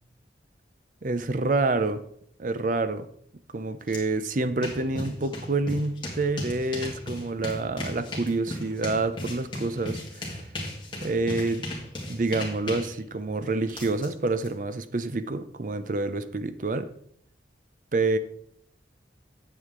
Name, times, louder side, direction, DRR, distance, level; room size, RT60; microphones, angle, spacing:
voice 1, 1.0-2.0 2.4-3.1 3.5-10.4 11.0-11.7 12.1-16.9 17.9-18.2, right 3 dB, 45° right, 12 dB, 0.5 m, -27 dB
sound 1, 3.9-4.0 4.3-14.5, left 1 dB, 25° left, 2.0 m, -37 dB
9.6 x 7.6 x 3.7 m, 0.66 s
head